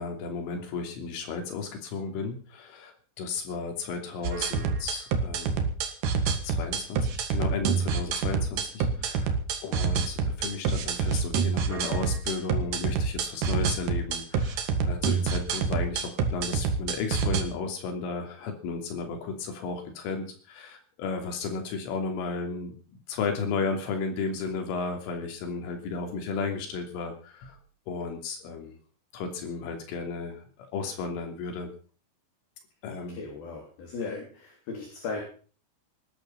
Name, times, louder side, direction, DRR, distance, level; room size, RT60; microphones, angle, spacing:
voice 1, 0.0-5.7 6.4-22.8 23.1-27.6 27.9-28.8 29.1-31.7 32.8-33.2, left 4 dB, 70° left, 4 dB, 5.4 m, -34 dB
sound 1, 4.2-17.4, right 5 dB, 55° right, 2.6 m, -27 dB
voice 2, 32.9-35.2, left 4 dB, 50° left, 1 dB, 4.7 m, -37 dB
19.5 x 12.0 x 5.8 m, 0.41 s
omnidirectional pair, 5.9 m